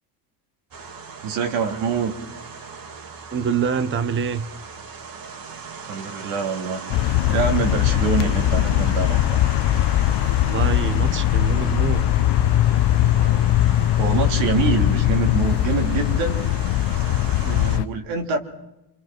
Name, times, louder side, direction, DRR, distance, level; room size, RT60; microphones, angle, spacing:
sound 1, 0.7-17.8, right 5 dB, 45° right, 2.4 m, -38 dB
voice 1, 1.2-2.2 5.9-9.4 13.2-13.4 14.0-16.5 17.4-18.4, right 6 dB, 85° right, 3 dB, 3.3 m, -25 dB
voice 2, 3.3-4.5 10.5-12.1, right 7 dB, 25° right, 11 dB, 1.0 m, -25 dB
sound 2, 6.9-17.8, left 13 dB, 55° left, 0.8 m, -20 dB
27.0 x 26.5 x 6.2 m, 0.94 s
cardioid pair, 105°, 47 cm